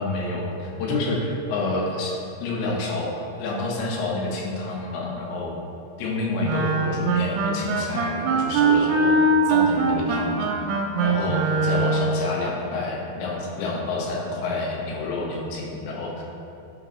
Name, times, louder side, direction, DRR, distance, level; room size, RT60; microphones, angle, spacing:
voice 1, 0.0-3.1 3.4-5.5 6.0-9.2 9.5-10.5 11.0-16.2, left 2 dB, 85° left, -2 dB, 3.4 m, -28 dB
Wind instrument woodwind instrument, 6.4-12.2, right 3 dB, 85° right, 2.8 m, -22 dB
9.9 x 6.2 x 2.9 m, 2.7 s
omnidirectional pair, 4.9 m